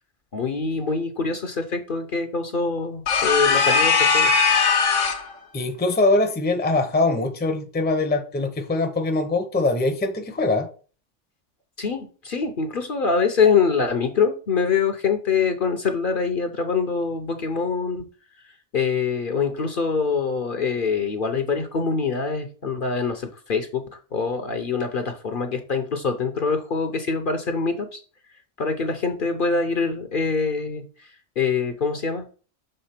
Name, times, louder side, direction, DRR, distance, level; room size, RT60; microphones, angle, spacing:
voice 1, 0.3-4.3 11.8-18.0 18.7-23.8 24.1-28.0 28.6-31.1 31.4-32.2, left 5 dB, 50° left, 0.9 m, -24 dB
sound 1, 3.1-5.3, left 5 dB, 80° left, 1.3 m, -19 dB
voice 2, 5.5-10.7, left 2 dB, 10° left, 0.7 m, -22 dB
6.7 x 3.7 x 5.8 m
omnidirectional pair, 1.3 m